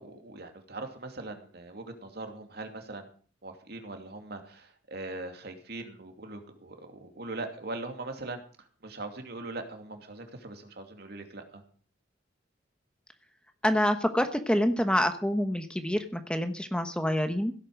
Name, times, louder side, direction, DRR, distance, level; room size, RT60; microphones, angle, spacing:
voice 1, 0.0-3.1 3.4-11.6, right 2 dB, 55° right, 5 dB, 2.7 m, -41 dB
voice 2, 13.6-17.5, equal, 5° left, 7 dB, 1.1 m, -27 dB
16.5 x 8.6 x 6.5 m, 0.42 s
head